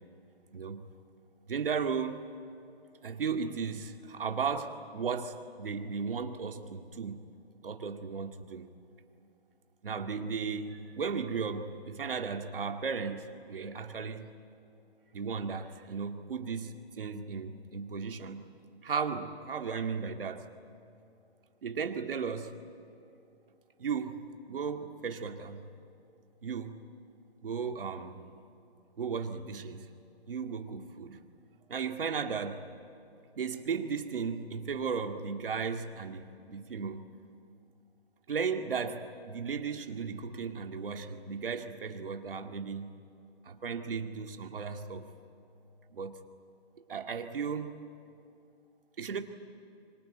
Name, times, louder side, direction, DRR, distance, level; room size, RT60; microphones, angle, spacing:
voice 1, 0.5-0.9 1.5-2.3 3.0-7.3 7.6-8.7 9.8-14.3 15.1-18.5 18.8-20.5 21.6-22.5 23.8-25.7 26.4-26.8 27.4-28.3 29.0-29.9 30.3-31.2 31.7-32.7 33.4-37.1 38.3-42.9 43.4-45.1 45.9-46.2 46.9-47.7 49.0-49.2, right 5 dB, 55° right, 6 dB, 2.2 m, -35 dB
25.5 x 24.0 x 9.1 m, 2.6 s
hypercardioid pair, 165°, 32 cm